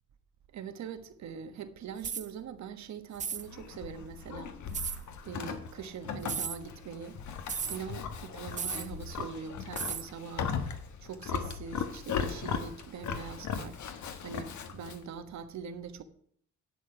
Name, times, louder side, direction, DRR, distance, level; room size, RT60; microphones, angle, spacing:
voice 1, 0.5-4.6 5.2-7.2 7.7-13.8 14.2-16.0, right 6 dB, 65° right, 1.3 m, -42 dB
sound 1, 2.0-2.3 3.1-3.5 4.7-5.0 6.2-6.6 7.5-7.8 8.6-8.9 9.8-10.1, right 6 dB, 25° right, 0.5 m, -35 dB
Livestock farm animals working animals, 3.4-15.0, left 7 dB, 70° left, 1.4 m, -38 dB
11.0 x 7.9 x 4.9 m
cardioid pair, 90°, 30 cm